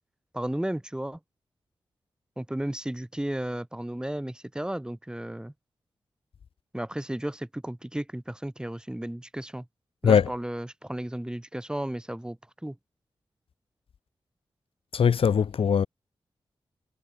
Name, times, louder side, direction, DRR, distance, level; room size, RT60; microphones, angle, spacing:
voice 1, 0.3-1.2 2.4-5.5 6.7-9.7 10.0-12.4 12.6-12.8, right 1 dB, 10° right, 3.7 m, -33 dB
voice 2, 14.9-15.9, left 7 dB, 80° left, 1.2 m, -21 dB
wide cardioid pair, 95°, 9 cm